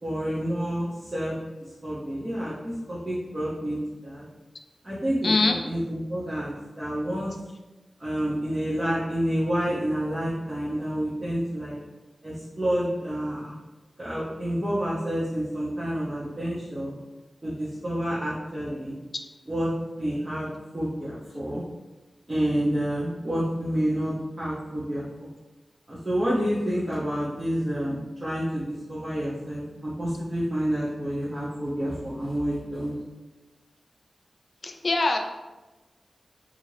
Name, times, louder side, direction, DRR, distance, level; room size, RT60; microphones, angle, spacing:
voice 1, 0.0-1.3 1.6-4.2 4.8-7.4 8.0-11.8 12.2-13.5 14.0-16.9 17.4-19.0 19.5-19.7 20.0-20.5 20.7-21.6 22.3-25.3 25.9-32.9, equal, 30° right, -9 dB, 0.7 m, -29 dB
voice 2, 5.2-5.5 34.6-35.2, left 3 dB, 60° left, 4 dB, 0.3 m, -22 dB
2.6 x 2.4 x 3.2 m, 1.1 s
cardioid pair, 55°, 0 cm